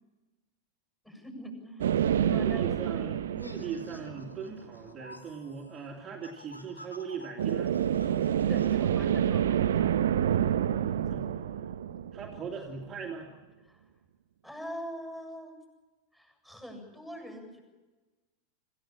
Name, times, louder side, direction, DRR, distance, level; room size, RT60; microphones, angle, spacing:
voice 1, 1.0-3.9 8.5-10.0 11.8-12.0 13.7-13.9 14.4-15.6 16.1-17.6, equal, 5° left, 3 dB, 7.5 m, -44 dB
sound 1, 1.8-4.6 7.4-12.8, right 10 dB, 60° right, 0.7 m, -28 dB
voice 2, 2.2-7.7 10.6-11.3 12.1-13.3, right 5 dB, 25° right, -1 dB, 2.5 m, -40 dB
sound 2, 3.4-8.8, left 1 dB, 85° left, 2.0 m, -51 dB
26.0 x 15.0 x 8.8 m, 1.2 s
figure-of-eight pair, 90°, 0 cm